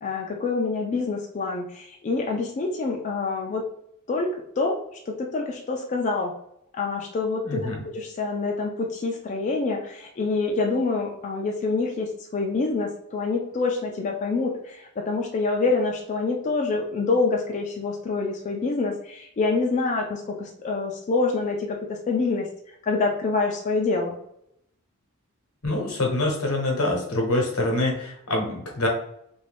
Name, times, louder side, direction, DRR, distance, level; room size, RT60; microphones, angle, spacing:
voice 1, 0.0-3.6 4.1-4.3 4.6-4.8 5.1-6.3 6.7-22.5 22.8-24.2, left 3 dB, 35° left, 0 dB, 0.3 m, -26 dB
voice 2, 7.4-7.8 25.6-28.9, left 2 dB, 85° left, 0 dB, 0.9 m, -25 dB
2.5 x 2.2 x 3.3 m, 0.74 s
head